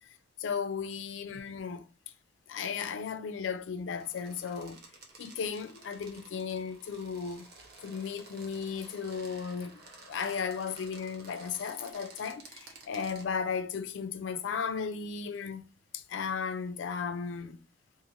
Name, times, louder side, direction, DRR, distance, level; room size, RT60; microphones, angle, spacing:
voice 1, 0.4-1.9 2.5-4.8 5.2-7.5 7.8-9.7 10.1-15.6 15.9-17.6, left 6 dB, 70° left, 0.4 m, -35 dB
sound 1, 4.0-13.3, right 3 dB, 55° right, 0.7 m, -53 dB
2.5 x 2.5 x 3.0 m
head